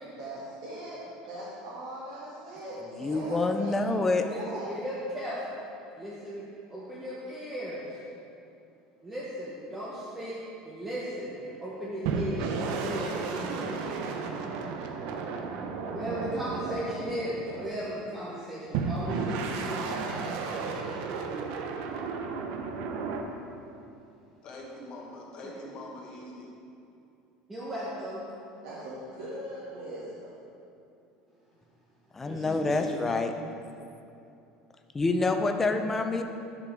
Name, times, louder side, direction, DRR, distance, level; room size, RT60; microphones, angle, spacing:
voice 1, 0.0-4.7 28.6-30.3, right 1 dB, 80° right, -10 dB, 1.7 m, -40 dB
voice 2, 3.0-4.2 32.1-33.3 34.9-36.2, left 3 dB, 10° left, 6 dB, 0.4 m, -27 dB
voice 3, 4.2-5.4 6.0-7.9 9.0-10.4 10.6-13.8 15.9-21.0 25.4-25.5 27.5-28.3 32.2-32.9, equal, 10° right, -7 dB, 0.8 m, -37 dB
sound 1, 12.0-18.0 18.7-23.2, right 5 dB, 60° right, 0.6 m, -33 dB
voice 4, 24.4-26.5 32.5-33.2, left 1 dB, 35° left, -2 dB, 1.2 m, -43 dB
10.0 x 4.9 x 3.4 m, 2.6 s
cardioid pair, 170°, 2 cm